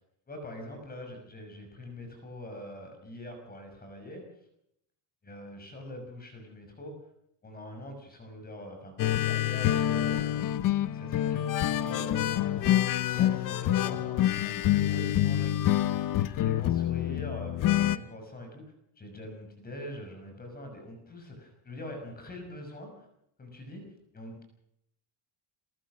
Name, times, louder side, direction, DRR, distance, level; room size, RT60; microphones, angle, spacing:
voice 1, 0.3-4.2 5.2-7.0 7.4-10.4 10.9-12.8 13.1-15.6 16.2-23.1 23.4-23.8 24.1-24.4, left 1 dB, 20° left, 4 dB, 6.1 m, -43 dB
sound 1, 9.0-18.0, left 12 dB, 45° left, 0.9 m, -27 dB
30.0 x 14.0 x 6.3 m, 0.76 s
cardioid pair, 165°, 45 cm